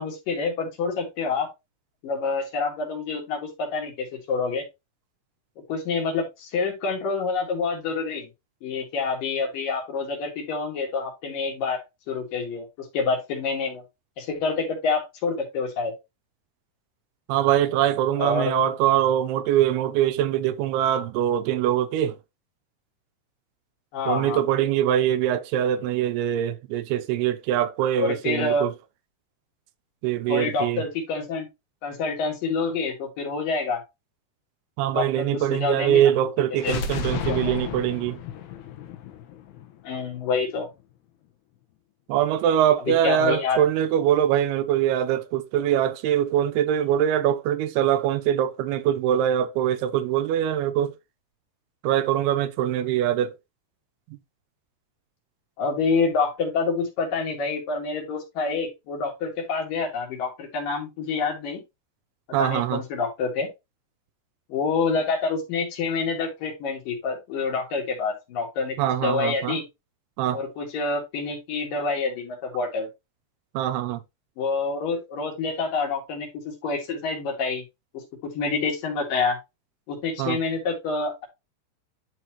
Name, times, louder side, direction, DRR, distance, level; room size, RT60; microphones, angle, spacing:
voice 1, 0.0-1.5 2.0-4.6 5.7-8.3 8.6-13.8 14.2-15.9 18.2-18.7 23.9-24.5 28.0-28.7 30.3-31.5 31.8-33.8 34.9-36.0 36.6-36.8 37.3-37.6 39.8-40.7 42.9-43.6 55.6-61.6 62.4-63.5 64.5-69.6 70.3-72.9 74.4-77.6 77.9-79.4 79.9-81.3, left 4 dB, 60° left, 3.5 m, -27 dB
voice 2, 17.3-22.2 24.1-28.7 30.0-30.8 34.8-38.2 42.1-50.9 51.8-53.3 54.1-54.2 62.3-62.8 68.8-69.6 70.2-70.4 73.5-74.0 80.2-80.4, right 11 dB, 80° right, 2.6 m, -23 dB
sound 1, 36.5-40.4, left 6 dB, 75° left, 3.0 m, -33 dB
11.0 x 4.2 x 3.0 m
omnidirectional pair, 4.8 m